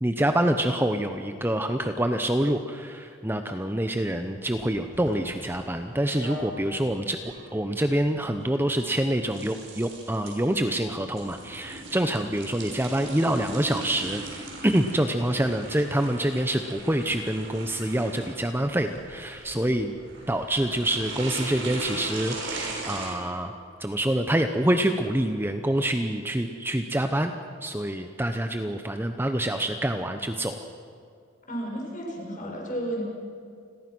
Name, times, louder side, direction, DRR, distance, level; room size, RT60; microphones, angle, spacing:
voice 1, 0.0-7.2 7.5-20.0 20.3-23.5 23.8-27.3 27.6-30.6, right 1 dB, 10° right, 7 dB, 0.8 m, -26 dB
sound 1, 4.4-23.1, right 2 dB, 60° right, 6.2 m, -39 dB
voice 2, 31.5-33.0, right 1 dB, 40° left, -1 dB, 6.0 m, -32 dB
29.5 x 21.5 x 6.2 m, 2.3 s
head